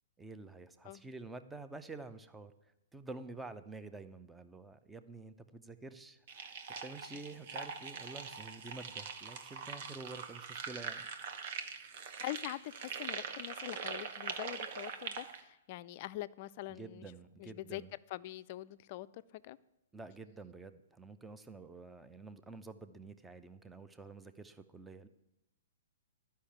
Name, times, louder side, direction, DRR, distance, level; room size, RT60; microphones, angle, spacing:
voice 1, 0.2-2.5 2.9-11.1 16.7-17.9 19.9-25.1, right 3 dB, 10° right, 11 dB, 0.7 m, -49 dB
sound 1, 6.3-15.4, right 6 dB, 50° right, 1.2 m, -43 dB
voice 2, 12.2-17.1 17.4-17.8 18.1-19.6, left 16 dB, 45° left, 16 dB, 0.4 m, -44 dB
11.5 x 5.7 x 8.6 m, 0.90 s
hypercardioid pair, 125°, 0 cm